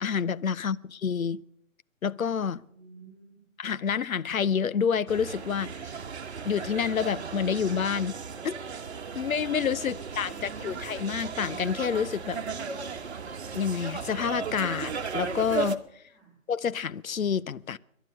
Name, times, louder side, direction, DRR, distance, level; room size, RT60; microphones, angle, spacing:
voice 1, 0.0-1.4 2.0-2.6 3.6-5.7 6.4-8.1 8.4-8.5 9.1-12.4 13.5-15.8 16.5-17.8, left 7 dB, 75° left, 0.7 m, -28 dB
voice 2, 2.6-3.4 9.9-10.7 16.1-16.4, right 5 dB, 10° left, 3.2 m, -52 dB
sound 1, 5.1-15.8, right 5 dB, 50° right, 1.1 m, -36 dB
18.5 x 11.5 x 6.5 m
figure-of-eight pair, 150°, 41 cm